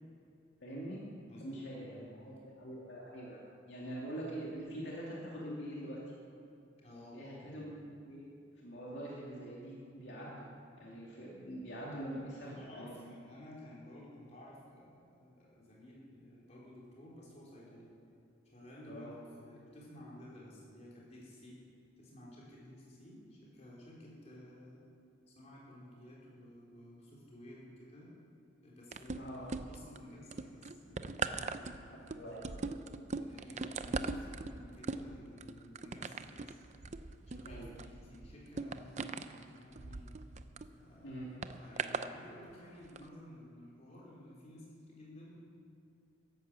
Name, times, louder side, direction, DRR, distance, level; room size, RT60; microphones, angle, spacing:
voice 1, 0.6-1.0 1.4-3.4 3.7-6.0 7.1-8.3 8.6-10.4 10.7-13.0 18.9-19.1 29.2-29.5 32.1-32.7 37.4-37.7 41.0-41.3, right 1 dB, 65° left, -5 dB, 2.5 m, -44 dB
voice 2, 1.3-2.3 6.8-7.6 12.4-17.9 18.5-19.1 19.4-21.6 22.0-24.9 25.3-28.1 28.6-29.4 29.7-32.4 33.2-36.6 37.3-40.1 40.7-41.3 41.6-45.4, left 1 dB, 35° left, -6 dB, 4.2 m, -54 dB
sound 1, 28.9-30.0 30.3-40.7 41.4-42.1 42.8-43.0, right 4 dB, 40° right, 0.5 m, -40 dB
13.5 x 11.0 x 7.5 m, 2.7 s
head